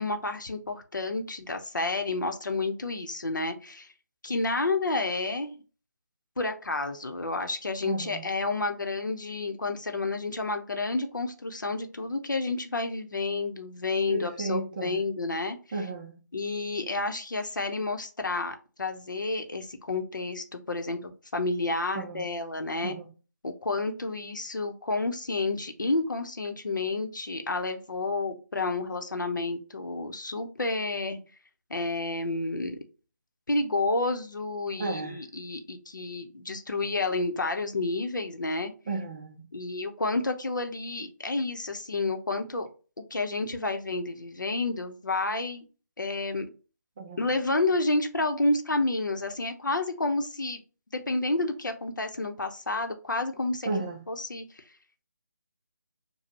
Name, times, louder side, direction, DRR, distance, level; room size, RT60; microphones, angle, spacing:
voice 1, 0.0-3.9 4.2-5.6 6.4-15.6 16.3-23.0 23.4-31.2 31.7-32.8 33.5-38.7 39.5-42.7 43.1-45.6 46.0-46.5 47.2-50.6 50.9-53.7 54.1-54.6, left 2 dB, 80° left, 0.9 m, -30 dB
voice 2, 7.8-8.2 14.1-15.0 15.7-16.2 21.9-22.3 22.8-23.1 34.8-35.2 38.9-39.5 47.0-47.3 53.6-54.0, right 3 dB, 25° right, 0.6 m, -33 dB
6.8 x 2.3 x 2.9 m
figure-of-eight pair, 160°, 10 cm